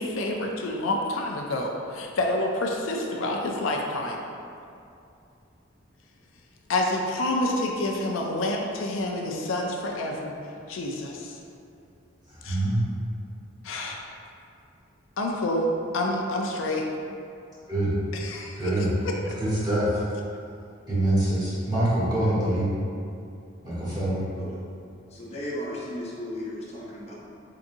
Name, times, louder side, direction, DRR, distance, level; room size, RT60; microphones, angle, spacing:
voice 1, 0.0-4.2 6.7-10.3 10.7-11.4 12.4-12.6 13.6-14.0 15.2-15.7 15.9-16.9 18.1-19.1, left 1 dB, 80° left, 0 dB, 0.4 m, -28 dB
voice 2, 12.3-12.8 17.7-17.9 18.5-18.9 19.4-20.0 20.9-22.7 23.6-24.2, right 1 dB, 20° right, -10 dB, 1.2 m, -25 dB
voice 3, 25.1-27.1, left 1 dB, 35° left, -6 dB, 0.6 m, -35 dB
3.9 x 3.7 x 2.6 m, 2.6 s
head